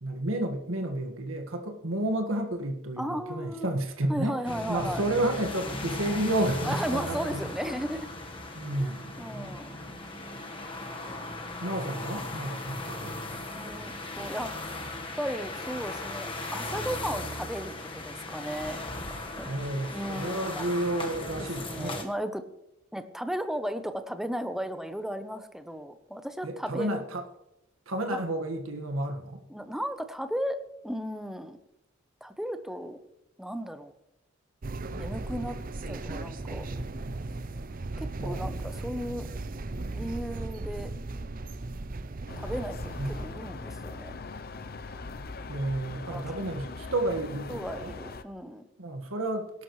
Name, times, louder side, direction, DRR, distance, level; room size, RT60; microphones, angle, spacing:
voice 1, 0.0-4.4 4.7-7.5 8.5-9.2 11.6-13.2 14.2-14.3 19.4-22.0 26.4-27.2 27.8-29.4 38.2-38.4 43.0-43.2 45.5-47.9 48.8-49.5, right 1 dB, 90° right, 4 dB, 1.7 m, -31 dB
voice 2, 3.0-3.7 4.1-5.0 6.6-8.1 8.8-8.9 9.2-9.8 13.5-14.5 15.2-18.8 19.4-19.5 19.9-20.6 21.4-22.4 22.9-27.0 28.1-28.2 29.5-30.6 30.8-31.6 32.2-33.0 33.4-33.9 34.9-35.6 35.9-36.7 38.0-39.3 39.9-40.9 42.4-44.2 45.9-46.2 47.5-48.6, equal, ahead, 9 dB, 0.8 m, -35 dB
sound 1, 4.4-22.0, left 2 dB, 25° left, 1.4 m, -37 dB
sound 2, 34.6-43.3, right 2 dB, 45° right, 0.6 m, -36 dB
sound 3, 42.3-48.2, left 3 dB, 50° left, 0.6 m, -40 dB
18.5 x 11.5 x 3.2 m, 0.89 s
head